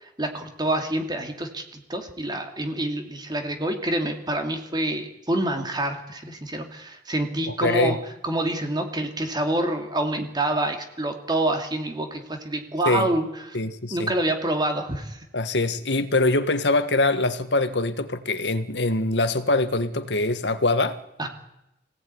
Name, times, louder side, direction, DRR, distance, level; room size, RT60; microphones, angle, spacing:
voice 1, 0.0-8.0 8.2-13.3 13.9-15.2 21.2-21.3, right 1 dB, 25° right, 5 dB, 2.6 m, -27 dB
voice 2, 7.5-8.0 12.8-13.1 13.5-14.1 15.3-21.0, left 2 dB, 80° left, 10 dB, 1.6 m, -23 dB
24.0 x 17.5 x 9.6 m, 0.87 s
head